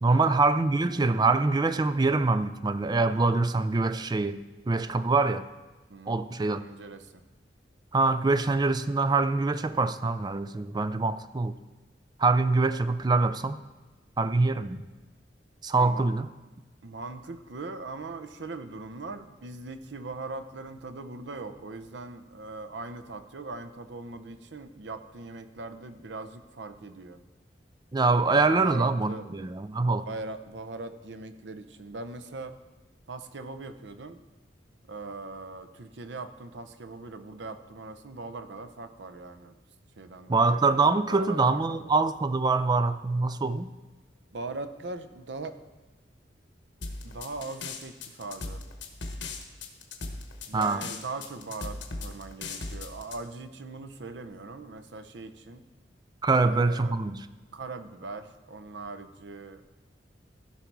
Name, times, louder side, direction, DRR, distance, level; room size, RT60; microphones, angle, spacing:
voice 1, 0.0-5.5 6.1-6.7 7.9-11.5 12.2-13.6 14.2-14.8 15.6-16.3 27.9-30.1 40.3-43.7 50.5-50.9 56.2-57.3, right 3 dB, 25° right, 12 dB, 0.4 m, -24 dB
voice 2, 5.9-6.2 6.6-7.2 15.7-16.0 16.8-27.2 28.1-29.4 30.0-32.5 33.1-34.2 34.9-39.5 40.0-40.7 41.1-42.1 44.3-45.6 47.0-48.6 50.5-55.7 56.3-56.9 57.5-59.6, right 3 dB, 70° right, 9 dB, 0.7 m, -40 dB
sound 1, 46.8-53.2, left 3 dB, 80° left, 1.2 m, -37 dB
15.5 x 5.7 x 4.6 m, 1.2 s
head